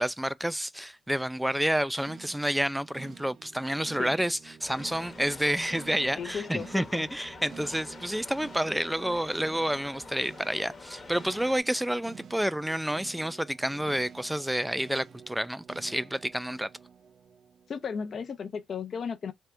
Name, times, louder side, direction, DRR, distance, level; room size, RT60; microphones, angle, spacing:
voice 1, 0.0-16.7, right 1 dB, 5° right, 0.3 m, -29 dB
sound 1, 2.0-18.3, right 7 dB, 55° right, 0.5 m, -51 dB
sound 2, 4.6-11.6, left 3 dB, 30° left, 1.0 m, -47 dB
voice 2, 6.2-7.1 17.7-19.3, left 6 dB, 50° left, 0.5 m, -35 dB
3.5 x 2.5 x 4.3 m
cardioid pair, 90°, 0 cm